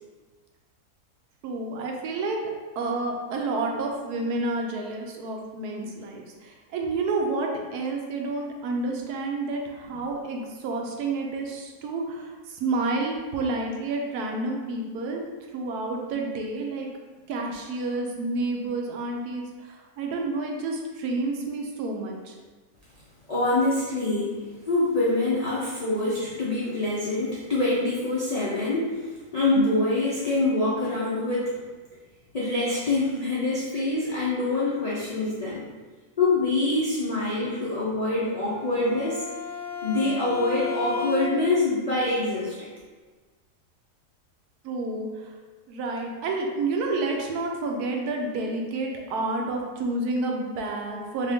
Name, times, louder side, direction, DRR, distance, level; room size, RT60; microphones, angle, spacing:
voice 1, 1.4-2.4 2.8-15.2 15.5-16.9 17.3-22.3 44.6-45.3 45.7-51.3, right 3 dB, 75° right, 1 dB, 1.1 m, -29 dB
voice 2, 23.3-24.4 24.6-31.5 32.3-35.7 36.2-39.2 39.8-42.7, left 2 dB, 85° left, -8 dB, 0.3 m, -25 dB
Bowed string instrument, 38.3-41.7, left 6 dB, 60° right, 0.8 m, -34 dB
2.9 x 2.7 x 3.4 m, 1.4 s
omnidirectional pair, 1.7 m